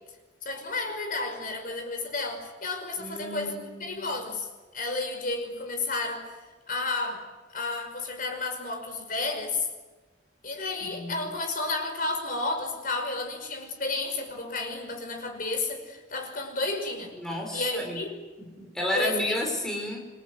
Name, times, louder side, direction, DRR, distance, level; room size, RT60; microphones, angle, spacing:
voice 1, 0.4-4.5 4.7-6.4 6.7-9.7 10.4-17.1 17.5-18.2 18.9-19.3, left 3 dB, 50° left, 5 dB, 5.5 m, -32 dB
voice 2, 3.0-4.2 10.8-11.3 17.1-18.0 18.6-20.0, left 1 dB, 5° left, 0 dB, 5.1 m, -32 dB
27.5 x 26.5 x 8.0 m, 1.2 s
head